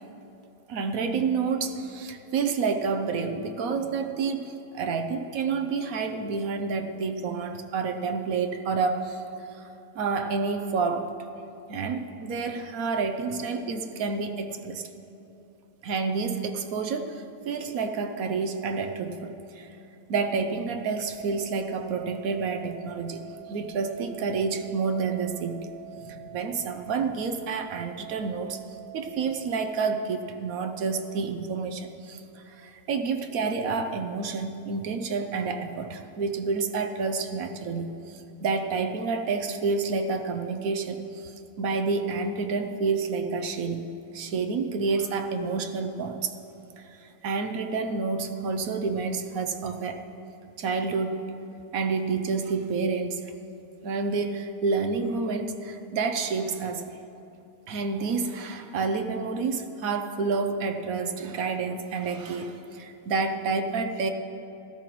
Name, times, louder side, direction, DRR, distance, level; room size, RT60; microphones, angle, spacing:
voice 1, 0.7-9.2 9.5-9.7 9.9-11.1 11.7-14.8 15.8-19.7 20.1-23.2 23.5-25.7 26.3-28.6 28.9-43.9 44.1-46.4 46.8-50.0 50.6-51.3 51.7-53.3 53.8-56.9 57.7-64.1, right 4 dB, 65° right, 6 dB, 1.0 m, -29 dB
sound 1, 20.9-29.5, right 14 dB, 40° left, 2.4 m, -45 dB
17.5 x 13.5 x 3.0 m, 2.9 s
omnidirectional pair, 1.7 m